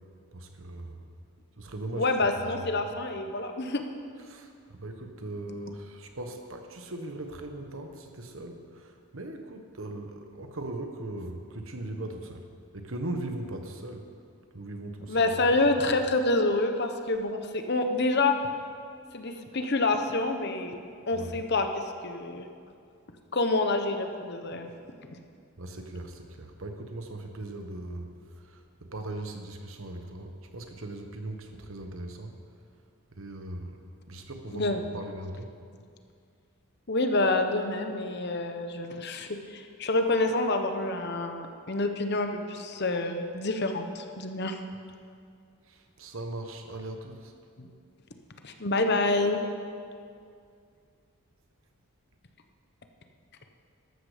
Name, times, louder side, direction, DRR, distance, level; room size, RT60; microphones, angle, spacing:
voice 1, 0.3-1.1 1.6-2.9 4.3-12.5 12.7-14.1 14.5-15.9 21.1-21.4 25.6-32.4 33.1-33.8 34.1-35.5 45.6-47.3, right 1 dB, 65° right, 5 dB, 1.3 m, -39 dB
voice 2, 2.0-3.8 15.1-18.3 19.1-20.7 21.1-22.5 23.3-24.7 34.5-34.8 36.9-44.6 47.6-47.7 48.4-49.4, left 2 dB, 45° left, 6 dB, 1.0 m, -27 dB
13.5 x 12.5 x 5.1 m, 2.3 s
head